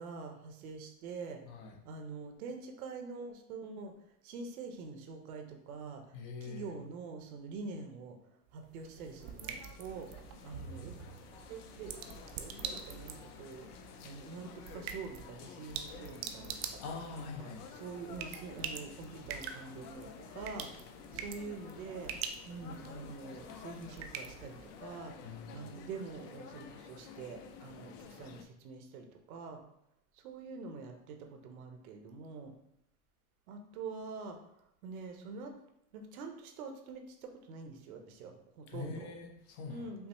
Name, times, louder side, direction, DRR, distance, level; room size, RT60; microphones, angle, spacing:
voice 1, 0.0-1.4 1.8-3.9 4.2-8.2 8.5-10.1 10.4-10.9 11.5-16.8 17.2-22.1 22.5-29.6 30.1-32.5 33.5-34.4 34.8-35.6 35.9-39.1 39.7-40.1, right 4 dB, 60° right, 4 dB, 0.8 m, -45 dB
voice 2, 1.5-1.8 6.1-6.8 16.8-17.6 25.2-25.7 38.7-39.9, left 4 dB, 40° left, 1 dB, 0.7 m, -44 dB
sound 1, 8.5-24.9, right 7 dB, 45° right, 0.4 m, -46 dB
sound 2, 8.8-28.4, left 6 dB, 70° left, 0.6 m, -52 dB
5.5 x 2.1 x 3.0 m, 0.77 s
hypercardioid pair, 120°, 48 cm